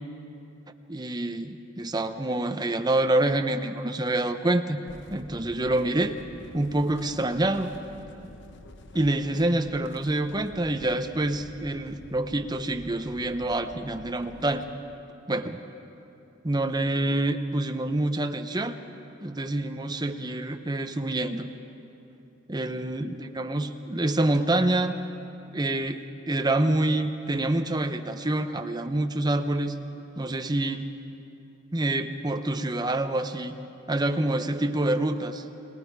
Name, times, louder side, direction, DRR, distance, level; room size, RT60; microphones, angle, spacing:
voice 1, 0.9-4.8 5.1-6.1 6.5-7.7 8.9-14.7 15.3-15.6 16.4-18.8 19.2-21.5 22.5-24.9 25.5-29.7 30.2-30.9 31.7-33.5 33.9-35.4, right 1 dB, 20° right, 7 dB, 0.8 m, -27 dB
sound 1, 4.9-14.6, left 1 dB, 60° left, 1.0 m, -48 dB
30.0 x 20.0 x 4.8 m, 2.8 s
head